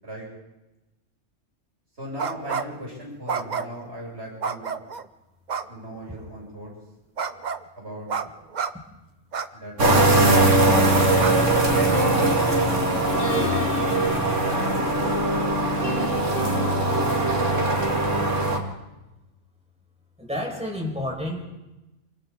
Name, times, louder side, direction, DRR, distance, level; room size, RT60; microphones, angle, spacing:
voice 1, 2.0-4.7 5.7-6.7 7.8-8.1 9.5-10.3 11.4-13.2 13.5-14.1 14.4-16.6, equal, 60° right, -4 dB, 7.6 m, -38 dB
sound 1, 2.2-2.8 3.3-3.9 4.4-5.0 5.5-5.7 7.2-7.6 8.1-8.3 8.5-8.7 9.3-9.5 9.9-10.0 10.5-10.6 11.2-11.3, right 6 dB, 40° right, 0.8 m, -29 dB
sound 2, 9.8-18.6, right 2 dB, 75° right, 2.8 m, -21 dB
sound 3, 11.7-18.0, equal, 40° left, 1.7 m, -32 dB
voice 2, 20.2-21.4, left 1 dB, 5° right, -2 dB, 5.2 m, -30 dB
27.5 x 24.5 x 3.8 m, 1.0 s
omnidirectional pair, 1.3 m